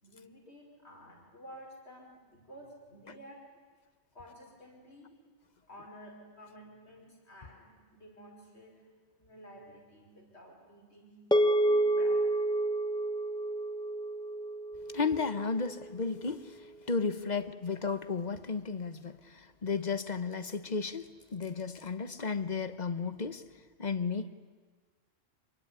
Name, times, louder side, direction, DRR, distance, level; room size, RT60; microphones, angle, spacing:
voice 1, 0.0-3.4 4.1-5.1 5.7-8.8 9.1-11.2 11.6-12.3 17.2-17.4, equal, 90° left, 0 dB, 6.1 m, -52 dB
sound 1, 11.3-15.8, right 1 dB, 5° left, 1.4 m, -29 dB
voice 2, 14.9-23.4 23.8-24.3, left 4 dB, 45° left, 12 dB, 1.2 m, -34 dB
26.0 x 22.5 x 9.8 m, 1.4 s
omnidirectional pair, 1.1 m